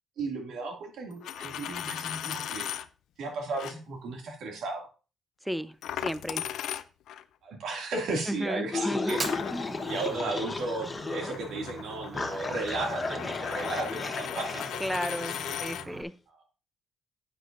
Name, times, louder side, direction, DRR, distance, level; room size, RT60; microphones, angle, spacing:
voice 1, 0.2-2.7 3.2-4.9 7.4-9.4 9.8-15.0 15.3-15.6, right 3 dB, 75° right, 2 dB, 2.3 m, -35 dB
Coin (dropping), 1.1-2.9 3.5-3.7 5.8-7.2 9.1-15.9, left 11 dB, 80° left, 0.5 m, -37 dB
voice 2, 5.4-5.8 6.0-6.4 8.3-9.8 14.8-16.1, equal, ahead, 13 dB, 0.6 m, -34 dB
sound 1, 8.7-11.3 11.6-11.7 12.1-14.7, left 3 dB, 20° left, 1.1 m, -34 dB
Fire, 9.0-16.0, right 4 dB, 40° right, 0.9 m, -43 dB
9.8 x 8.6 x 2.6 m, 0.35 s
cardioid pair, 90°, 0 cm